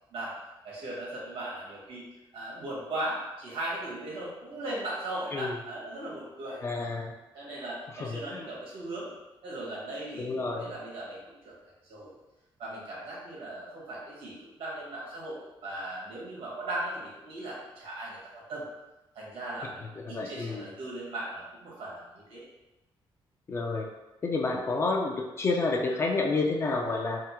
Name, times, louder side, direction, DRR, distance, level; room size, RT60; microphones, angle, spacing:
voice 1, 0.6-2.0 2.3-6.6 7.3-9.1 9.4-11.6 11.9-12.1 12.6-18.6 19.1-22.4, right 1 dB, 80° right, -6 dB, 1.3 m, -38 dB
voice 2, 6.6-7.1 7.9-8.5 10.2-10.7 19.8-20.7 23.5-23.9 24.2-27.2, left 3 dB, 30° left, 1 dB, 0.3 m, -30 dB
3.5 x 2.0 x 2.9 m, 1.0 s
cardioid pair, 165°, 9 cm